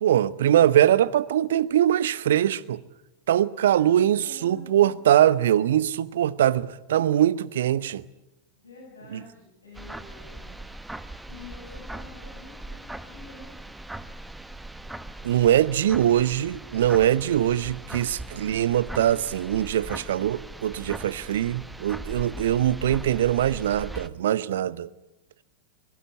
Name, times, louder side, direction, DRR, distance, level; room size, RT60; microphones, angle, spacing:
voice 1, 0.0-2.8 3.3-8.0 9.1-9.2 15.2-24.9, right 11 dB, 60° right, 0.9 m, -22 dB
voice 2, 3.6-4.9 8.6-10.6 11.2-13.6, left 2 dB, 75° left, 7.8 m, -48 dB
sound 1, 9.8-24.1, right 1 dB, 5° right, 1.2 m, -40 dB
24.0 x 22.0 x 8.4 m
figure-of-eight pair, 90°, 0 cm